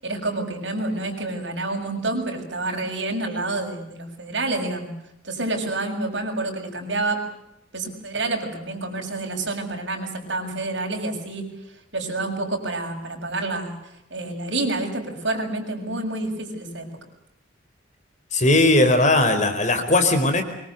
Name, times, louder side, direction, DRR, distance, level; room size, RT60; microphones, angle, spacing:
voice 1, 0.0-4.9 5.2-7.2 7.7-11.5 11.9-16.9, right 2 dB, 70° right, 3 dB, 7.0 m, -28 dB
voice 2, 18.3-20.4, left 2 dB, 40° left, 8 dB, 4.6 m, -18 dB
25.5 x 24.0 x 8.1 m, 0.80 s
head